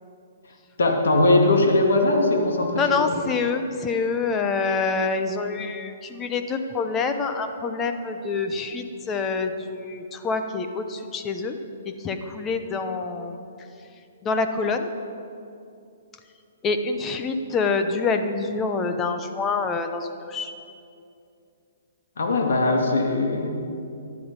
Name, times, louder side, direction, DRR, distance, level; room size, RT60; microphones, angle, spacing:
voice 1, 0.8-2.8 22.2-23.5, left 2 dB, 85° left, 2 dB, 2.2 m, -20 dB
voice 2, 2.8-11.6 11.9-13.4 14.2-14.9 16.6-20.5, left 4 dB, 15° left, 7 dB, 0.9 m, -26 dB
15.0 x 11.0 x 5.3 m, 2.6 s
hypercardioid pair, 155°, 0 cm